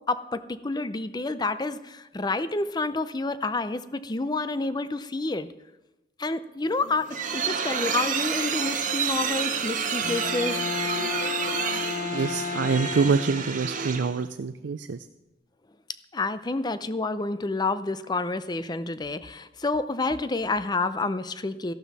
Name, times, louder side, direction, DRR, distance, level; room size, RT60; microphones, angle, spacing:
voice 1, 0.1-5.5 6.2-10.6 16.1-21.7, left 3 dB, 25° left, 13 dB, 0.5 m, -29 dB
sound 1, 6.7-14.2, right 6 dB, 45° right, 1.0 m, -29 dB
Bowed string instrument, 10.0-13.7, left 6 dB, 55° left, 0.9 m, -33 dB
voice 2, 12.1-15.0, right 5 dB, 85° right, 9 dB, 0.5 m, -25 dB
14.0 x 12.0 x 4.1 m, 0.98 s
head